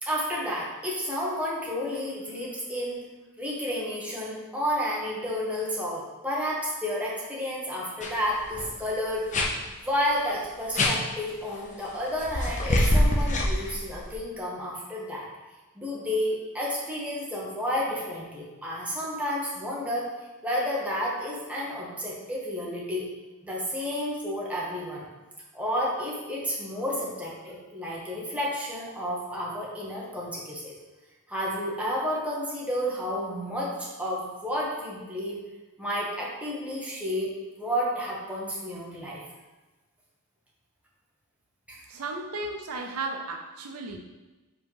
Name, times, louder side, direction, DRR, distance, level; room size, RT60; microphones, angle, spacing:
voice 1, 0.0-3.0 3.4-9.3 9.8-15.3 15.7-20.1 20.4-23.1 23.4-25.0 25.5-30.7 31.3-35.4 35.8-37.3 37.6-39.2 41.7-41.8, equal, 5° right, -5 dB, 1.3 m, -31 dB
sound 1, 8.0-8.1 8.4-8.7 9.3-9.5 10.7-10.9 12.2-14.1, left 1 dB, 35° left, 0.8 m, -24 dB
voice 2, 41.9-44.0, right 3 dB, 70° right, 4 dB, 0.6 m, -34 dB
5.0 x 3.6 x 5.4 m, 1.2 s
head